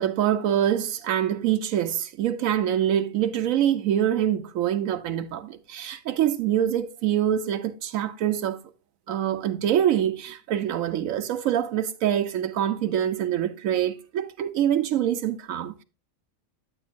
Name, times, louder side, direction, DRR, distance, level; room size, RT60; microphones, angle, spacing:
voice 1, 0.0-8.6 9.1-15.8, right 10 dB, 85° right, 1.0 m, -25 dB
9.9 x 8.8 x 2.5 m
omnidirectional pair, 1.4 m